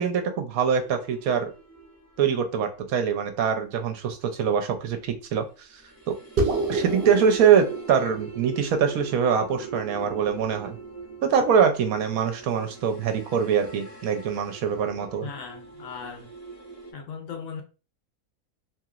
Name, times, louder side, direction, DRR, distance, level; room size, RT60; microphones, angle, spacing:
voice 1, 0.0-1.5 2.2-5.7 6.1-6.2 6.7-10.8 11.2-15.3, right 7 dB, 75° right, 1.0 m, -23 dB
sound 1, 0.8-4.2 5.5-16.9, right 3 dB, 15° left, 0.6 m, -43 dB
sound 2, 6.4-11.1, right 2 dB, 55° right, 0.7 m, -31 dB
voice 2, 15.2-16.3 16.9-17.6, left 6 dB, 70° left, 1.0 m, -37 dB
3.0 x 2.8 x 2.4 m
omnidirectional pair, 1.6 m